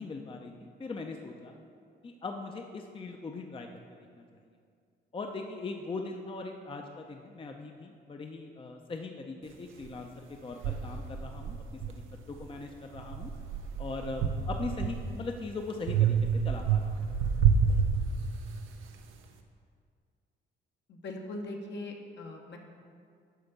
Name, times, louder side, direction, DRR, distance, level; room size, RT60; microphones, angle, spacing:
voice 1, 0.0-1.6 2.0-3.7 4.2-4.3 5.1-13.3 13.8-16.2 16.4-17.0, left 3 dB, 25° left, 3 dB, 0.6 m, -40 dB
sound 1, 9.8-9.9 10.6-12.5 12.9-15.3 15.9-18.6, right 6 dB, 85° right, 0.7 m, -29 dB
voice 2, 20.9-22.6, left 2 dB, 60° left, 2 dB, 1.1 m, -40 dB
9.2 x 3.5 x 6.8 m, 2.2 s
cardioid pair, 90°, 20 cm